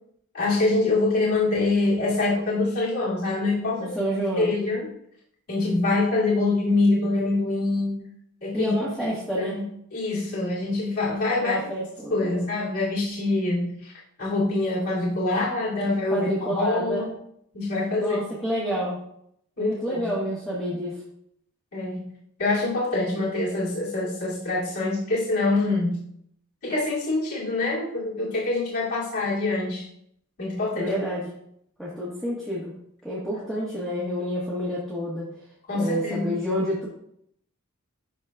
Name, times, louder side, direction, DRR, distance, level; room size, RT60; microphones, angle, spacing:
voice 1, 0.3-4.0 4.4-4.9 5.5-8.0 8.4-8.7 9.4-11.6 12.1-13.9 14.2-17.1 17.5-18.2 19.6-20.1 21.7-22.0 22.4-25.9 26.6-29.8 30.4-30.9 33.3-33.4 35.7-36.4, left 2 dB, 80° left, -9 dB, 2.8 m, -25 dB
voice 2, 3.8-4.5 8.5-9.6 11.4-12.4 16.1-17.1 18.0-19.0 19.6-21.0 30.7-31.3 31.8-32.7 33.0-35.3 35.8-36.9, equal, ahead, -8 dB, 1.4 m, -29 dB
12.5 x 4.2 x 2.4 m, 0.70 s
head